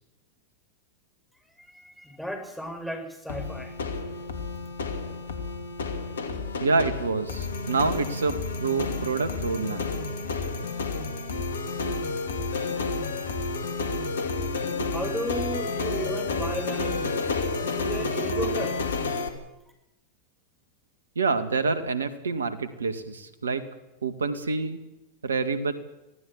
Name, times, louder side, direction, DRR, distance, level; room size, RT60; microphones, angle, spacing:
voice 1, 1.6-3.7 14.9-18.8, equal, ahead, 3 dB, 6.7 m, -35 dB
sound 1, 3.3-19.3, left 3 dB, 75° left, 2.7 m, -30 dB
voice 2, 6.6-9.8 21.2-23.6 24.0-24.8 25.2-25.7, right 4 dB, 85° right, 10 dB, 2.1 m, -27 dB
24.5 x 17.0 x 7.5 m, 0.96 s
figure-of-eight pair, 90°, 0 cm